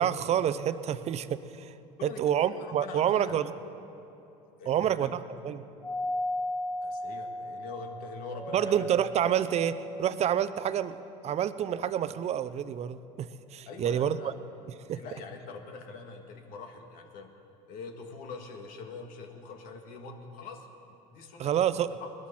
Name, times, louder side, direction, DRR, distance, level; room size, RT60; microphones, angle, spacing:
voice 1, 0.0-1.7 2.0-3.5 4.7-5.6 8.5-11.0 11.2-14.3 14.9-15.0 21.4-21.9, right 9 dB, 45° right, 14 dB, 0.7 m, -28 dB
voice 2, 2.0-3.3 4.6-5.1 6.8-8.9 13.6-14.3 14.9-17.3 17.7-20.7 21.1-21.7 22.0-22.1, left 4 dB, 65° left, 4 dB, 1.8 m, -43 dB
Doorbell, 5.8-10.7, left 1 dB, 20° left, 2.9 m, -36 dB
20.5 x 12.5 x 4.4 m, 2.9 s
supercardioid pair, 85°, 15 cm